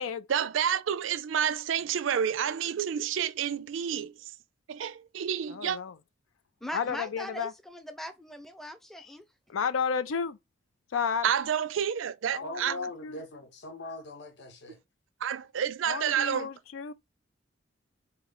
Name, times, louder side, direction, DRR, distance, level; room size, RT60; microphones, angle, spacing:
voice 1, 0.3-4.1 4.7-5.8 11.2-12.7 15.2-16.5, right 8 dB, 75° right, 0.4 m, -29 dB
voice 2, 5.5-5.9 6.7-7.5 9.0-9.1 9.5-10.4 10.9-11.2 12.3-13.2 15.9-16.9, left 6 dB, 90° left, 0.4 m, -32 dB
voice 3, 6.6-9.2, equal, ahead, 0.5 m, -40 dB
voice 4, 12.4-14.8, left 2 dB, 60° left, 0.8 m, -40 dB
4.0 x 3.1 x 3.8 m
head